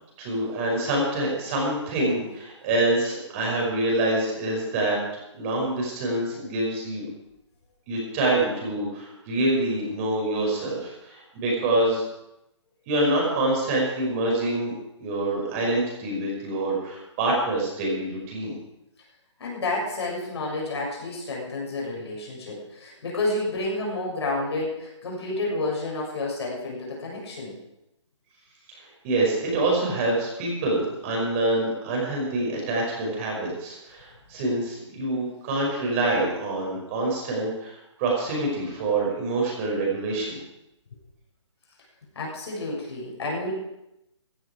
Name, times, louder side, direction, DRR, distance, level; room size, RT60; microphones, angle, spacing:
voice 1, 0.2-5.0 5.3-7.1 7.9-12.0 12.9-14.7 15.0-18.5 29.0-40.4, right 2 dB, 25° right, -2 dB, 5.6 m, -26 dB
voice 2, 19.4-27.5 42.2-43.5, left 2 dB, 55° left, -2 dB, 6.9 m, -30 dB
15.5 x 13.5 x 4.9 m, 0.85 s
hypercardioid pair, 155°, 16 cm